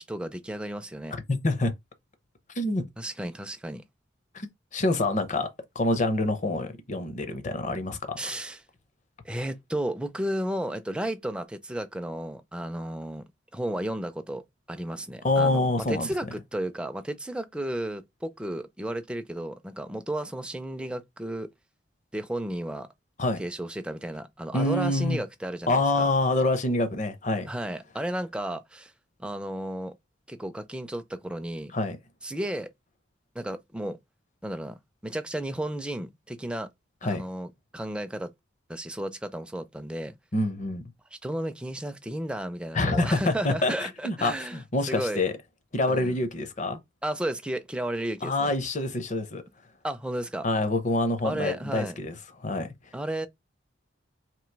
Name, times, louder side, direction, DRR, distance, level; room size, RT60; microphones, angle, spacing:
voice 1, 0.0-1.1 3.0-3.8 8.2-8.6 9.2-13.2 13.5-21.5 22.1-22.9 23.4-26.1 27.5-28.9 29.2-29.9 30.3-31.7 32.2-32.7 33.3-34.0 34.4-36.7 37.0-38.3 38.7-40.2 41.1-45.2 45.9-46.2 47.0-48.5 49.8-50.5 51.2-52.0 52.9-53.3, right 1 dB, 5° right, 0.4 m, -33 dB
voice 2, 1.3-1.7 2.6-2.9 4.3-5.5 5.7-8.3 15.2-16.1 23.2-23.4 24.5-25.2 25.7-27.5 31.7-32.0 37.0-37.2 40.3-40.8 42.7-45.3 45.7-46.8 48.2-49.4 50.4-52.1 52.4-52.7, left 2 dB, 40° left, 0.7 m, -26 dB
3.0 x 2.8 x 4.5 m
head